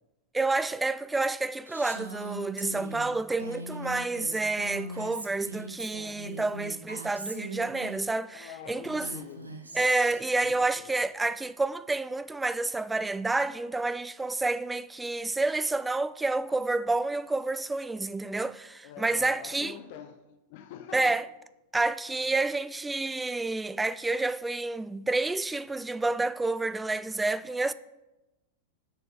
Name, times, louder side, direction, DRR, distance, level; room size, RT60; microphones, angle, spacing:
voice 1, 0.3-9.1 9.7-19.8 20.9-21.3 21.7-27.7, right 3 dB, 10° right, 0.3 m, -29 dB
Female speech woman speaking, 1.7-8.0 8.8-10.2, right 1 dB, 80° right, 1.0 m, -40 dB
voice 2, 8.3-9.7 10.4-10.9 18.8-21.2 22.4-22.7 25.1-25.2, left 9 dB, 50° left, 0.6 m, -46 dB
6.7 x 6.2 x 5.5 m
figure-of-eight pair, 90°, 0 cm